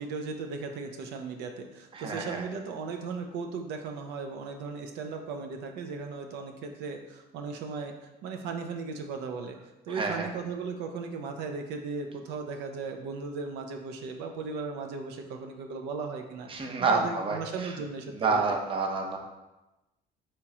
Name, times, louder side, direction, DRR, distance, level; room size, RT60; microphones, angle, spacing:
voice 1, 0.0-9.6 9.9-18.4, right 4 dB, 90° right, 4 dB, 0.5 m, -37 dB
voice 2, 1.9-2.4 9.9-10.3 16.5-17.4 18.2-19.2, right 4 dB, 30° right, 2 dB, 0.7 m, -28 dB
4.3 x 3.0 x 3.6 m, 1.0 s
cardioid pair, 110°, 17 cm